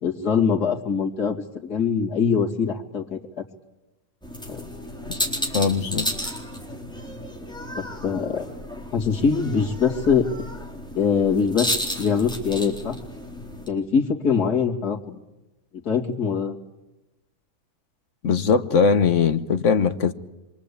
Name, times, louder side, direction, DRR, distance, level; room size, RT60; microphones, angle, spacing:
voice 1, 0.0-3.2 4.5-4.6 7.7-8.5 8.9-10.3 11.0-11.7 12.0-13.0 13.7-15.2 15.8-16.5, left 6 dB, 85° left, 2.9 m, -23 dB
sound 1, 4.2-13.7, equal, 5° left, 4.1 m, -32 dB
voice 2, 5.5-6.1 18.2-20.1, left 6 dB, 55° left, 1.4 m, -20 dB
25.5 x 23.5 x 8.4 m
omnidirectional pair, 1.6 m